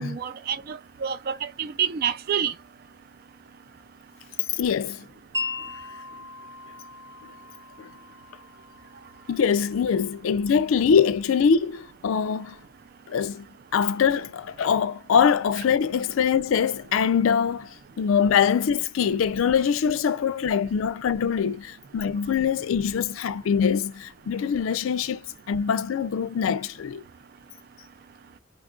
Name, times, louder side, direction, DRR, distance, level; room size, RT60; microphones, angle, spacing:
voice 1, 0.0-2.5, right 8 dB, 45° right, 0.3 m, -28 dB
voice 2, 4.5-5.1 7.8-7.9 9.3-12.6 13.1-13.5 13.7-27.0, left 7 dB, 75° left, 0.4 m, -23 dB
Wind chime, 5.3-11.4, left 3 dB, 15° right, 0.8 m, -39 dB
3.0 x 2.4 x 3.6 m
head